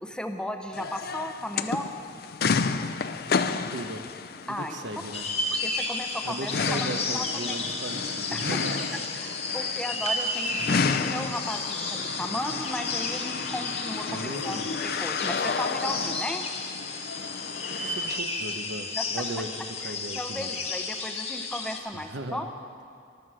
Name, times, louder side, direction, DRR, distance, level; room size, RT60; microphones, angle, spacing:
voice 1, 0.0-1.9 4.5-4.8 5.6-7.6 8.3-8.8 9.1-16.4 19.0-19.1 19.8-22.5, left 1 dB, 5° left, 6 dB, 0.7 m, -35 dB
sound 1, 0.7-18.2, left 5 dB, 55° left, 0.5 m, -32 dB
voice 2, 3.4-4.0 4.4-5.3 6.2-8.9 10.6-10.7 14.1-14.7 17.7-20.5 21.9-22.4, right 2 dB, 85° right, 7 dB, 0.9 m, -37 dB
sound 2, 5.1-21.8, left 3 dB, 35° left, 1.3 m, -32 dB
13.5 x 13.0 x 6.3 m, 2.3 s
head